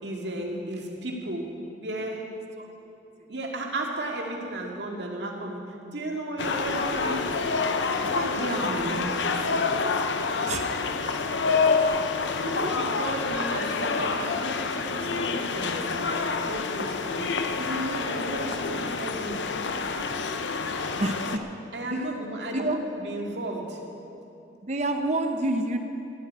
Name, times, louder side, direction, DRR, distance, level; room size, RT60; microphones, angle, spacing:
voice 1, 0.0-2.3 3.3-7.3 7.9-9.3 12.4-19.4 21.7-23.8, right 1 dB, 75° right, 0 dB, 2.2 m, -34 dB
sound 1, 6.4-21.4, left 4 dB, 90° left, 0.8 m, -27 dB
voice 2, 10.4-10.8 12.6-13.0 21.0-21.4 21.9-22.2 22.5-22.8 24.6-25.8, right 2 dB, 40° right, 6 dB, 0.8 m, -28 dB
14.5 x 8.4 x 9.3 m, 2.8 s
head